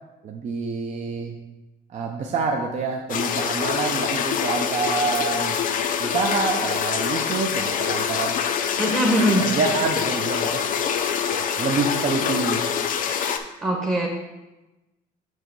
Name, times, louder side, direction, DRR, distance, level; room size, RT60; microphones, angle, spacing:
voice 1, 0.2-1.3 1.9-5.6 6.0-8.3 9.4-10.6 11.3-12.6, right 4 dB, 45° right, 1 dB, 0.7 m, -27 dB
sound 1, 3.1-13.4, left 7 dB, 55° left, 0.6 m, -25 dB
voice 2, 8.8-9.4 13.6-14.1, equal, 15° right, 0 dB, 0.9 m, -21 dB
7.5 x 3.0 x 6.0 m, 1.0 s
cardioid pair, 110°, 17 cm